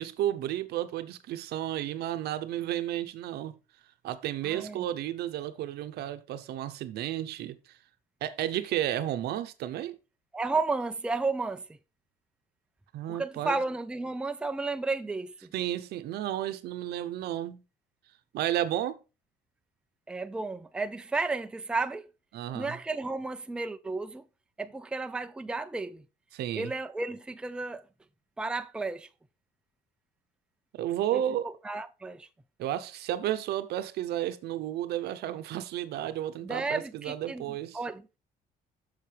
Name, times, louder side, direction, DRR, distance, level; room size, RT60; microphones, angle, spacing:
voice 1, 0.0-3.6 4.0-7.8 8.2-10.0 12.9-13.6 15.5-17.6 18.3-19.0 22.3-22.8 26.3-26.7 30.7-31.6 32.6-37.8, right 12 dB, 75° right, 0.8 m, -32 dB
voice 2, 4.5-4.8 10.3-11.6 13.1-15.5 20.1-22.1 22.5-24.2 24.6-26.0 26.6-27.8 28.4-29.1 31.1-31.2 31.6-32.3 36.4-37.4 37.7-38.0, right 3 dB, 5° right, 0.4 m, -32 dB
7.7 x 6.6 x 3.4 m
cardioid pair, 110°, 17 cm